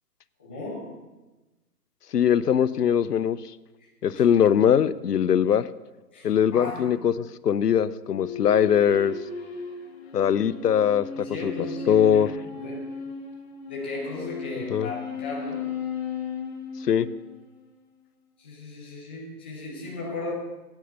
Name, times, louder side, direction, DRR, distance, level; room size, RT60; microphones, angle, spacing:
voice 1, 0.4-1.0 3.8-3.9 4.1-4.2 6.1-7.0 11.1-13.0 13.7-15.8 18.4-20.3, left 2 dB, 5° left, -4 dB, 0.5 m, -36 dB
voice 2, 2.1-3.4 4.0-5.6 6.2-7.1 7.4-9.1 10.1-11.5 11.9-12.3 14.7-14.9 16.9-17.1, left 9 dB, 70° left, 17 dB, 0.7 m, -21 dB
sound 1, 8.0-17.7, left 5 dB, 40° left, 1.8 m, -36 dB
9.4 x 9.2 x 7.8 m, 1.1 s
figure-of-eight pair, 140°, 49 cm